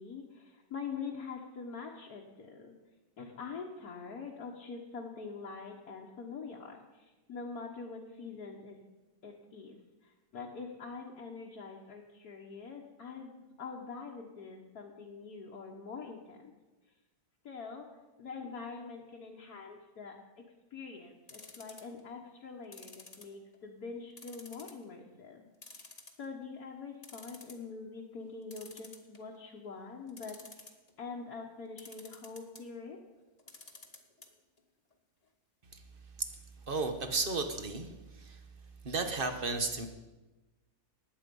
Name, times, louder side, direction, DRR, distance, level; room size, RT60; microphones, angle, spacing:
voice 1, 0.0-2.7 3.2-8.8 9.2-16.5 17.4-20.5 20.7-25.5 25.7-25.9 26.2-30.7 31.0-33.0, left 5 dB, 85° left, -3 dB, 1.8 m, -44 dB
sound 1, 21.3-22.0 22.7-23.7 24.2-24.8 25.2-25.3 25.6-26.4 26.8-26.9 27.0-27.7 28.5-29.4 30.1-30.9 31.8-32.6 33.4-34.3 34.6-34.7 34.9-35.0, left 3 dB, 25° left, 1.3 m, -51 dB
voice 2, 36.7-37.9 38.2-38.4 38.8-39.9, right 3 dB, 40° right, 7 dB, 1.3 m, -33 dB
19.5 x 8.3 x 5.4 m, 1.1 s
omnidirectional pair, 1.6 m